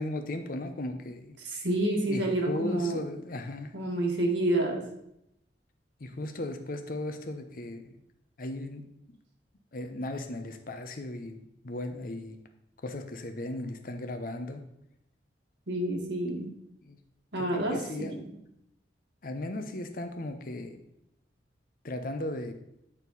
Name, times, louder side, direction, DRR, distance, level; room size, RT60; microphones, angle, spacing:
voice 1, 0.0-1.3 2.0-3.7 6.0-7.8 8.4-8.8 9.7-12.4 12.8-14.6 16.8-17.0 17.4-18.2 19.2-20.8 21.8-22.5, left 1 dB, 50° left, 7 dB, 0.7 m, -36 dB
voice 2, 1.4-3.0 3.7-4.8 15.7-16.5 17.3-18.2, right 1 dB, 90° right, 1 dB, 1.6 m, -28 dB
8.9 x 4.3 x 4.1 m, 0.80 s
head